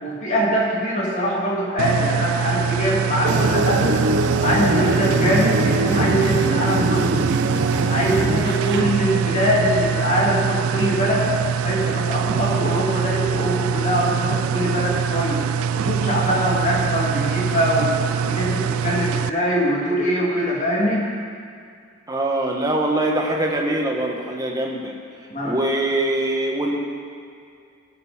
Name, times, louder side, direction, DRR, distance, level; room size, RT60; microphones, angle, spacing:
voice 1, 0.0-3.8 4.4-7.1 7.7-11.3 11.6-15.4 15.7-17.9 18.2-21.1 25.3-25.5, equal, 35° left, -4 dB, 2.7 m, -22 dB
sound 1, 1.8-19.3, right 7 dB, 80° right, 0.3 m, -24 dB
sound 2, 3.2-8.8, right 2 dB, 60° right, 0.9 m, -22 dB
voice 2, 22.1-24.9 25.4-26.8, right 1 dB, 15° right, 0 dB, 1.3 m, -23 dB
18.5 x 7.8 x 4.4 m, 2.3 s
head